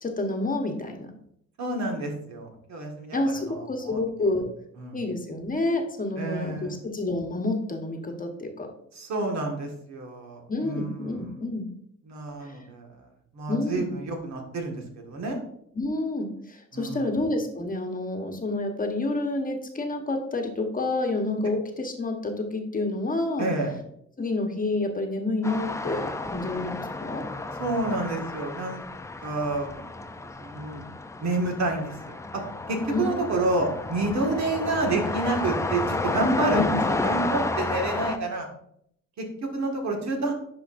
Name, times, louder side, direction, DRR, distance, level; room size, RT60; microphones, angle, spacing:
voice 1, 0.0-1.1 3.1-4.5 4.9-8.7 10.5-11.7 12.4-12.5 13.5-13.9 15.7-23.5 24.2-27.2 32.9-33.2 36.5-36.8, left 2 dB, 30° left, 4 dB, 1.1 m, -29 dB
voice 2, 1.6-3.2 3.4-4.0 4.8-5.0 6.2-6.8 8.9-11.4 12.1-12.9 13.3-15.4 16.7-17.1 23.4-23.7 27.6-28.8 29.2-30.9 31.2-32.4 32.7-38.5 39.2-40.3, right 2 dB, 65° right, 2 dB, 1.8 m, -29 dB
sound 1, 25.4-38.2, left 2 dB, 10° left, 0.4 m, -31 dB
10.5 x 4.7 x 2.5 m, 0.70 s
cardioid pair, 90°, 30 cm